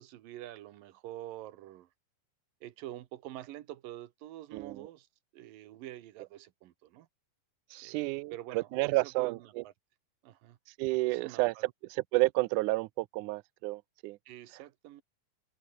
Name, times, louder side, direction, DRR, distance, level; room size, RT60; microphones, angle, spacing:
voice 1, 0.0-1.9 2.6-5.1 5.3-7.1 7.8-9.7 10.2-10.6 11.0-11.7 14.3-15.0, right 14 dB, 75° right, 2.8 m, -47 dB
voice 2, 7.7-9.4 10.8-11.5 12.1-14.2, right 21 dB, 90° right, 1.8 m, -30 dB
omnidirectional pair, 4.2 m